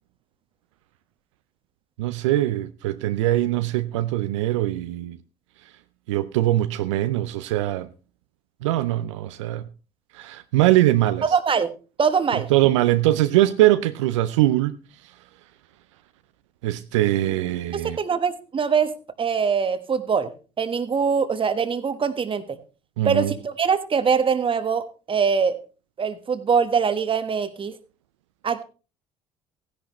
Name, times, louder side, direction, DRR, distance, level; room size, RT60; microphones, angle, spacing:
voice 1, 2.0-5.2 6.1-7.9 8.6-9.6 10.1-11.3 12.5-14.8 16.6-18.0 23.0-23.3, right 15 dB, 80° right, 0.5 m, -22 dB
voice 2, 11.2-11.7 12.0-12.5 17.7-18.9 19.2-20.3 20.6-22.6 23.0-25.6 26.0-27.7 28.4-28.6, right 6 dB, 35° right, 1.3 m, -23 dB
15.5 x 10.5 x 3.1 m
hypercardioid pair, 60°, 15 cm